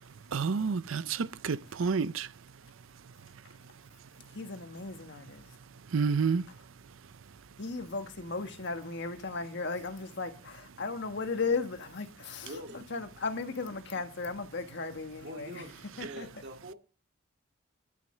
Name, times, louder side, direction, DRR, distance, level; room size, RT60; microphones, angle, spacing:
voice 1, 0.3-2.3 5.9-6.5, right 5 dB, 75° right, 0.5 m, -29 dB
voice 2, 4.3-5.5 7.6-15.6 16.0-16.3, left 4 dB, 60° left, 1.5 m, -36 dB
voice 3, 12.4-12.9 15.2-16.7, right 1 dB, 55° right, 2.4 m, -44 dB
11.0 x 7.0 x 6.5 m
head